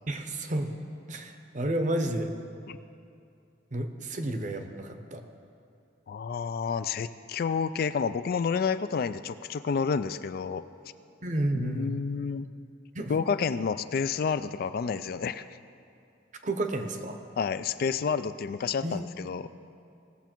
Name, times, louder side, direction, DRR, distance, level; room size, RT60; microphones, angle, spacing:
voice 1, 0.1-0.7 1.1-2.3 3.7-5.2 11.2-11.9 12.9-13.1 16.4-17.2 18.8-19.0, right 1 dB, 40° right, 6 dB, 0.8 m, -31 dB
voice 2, 6.1-10.7 11.5-12.5 13.1-15.4 17.4-19.5, left 6 dB, 50° left, 13 dB, 0.3 m, -29 dB
19.0 x 7.0 x 4.5 m, 2.6 s
head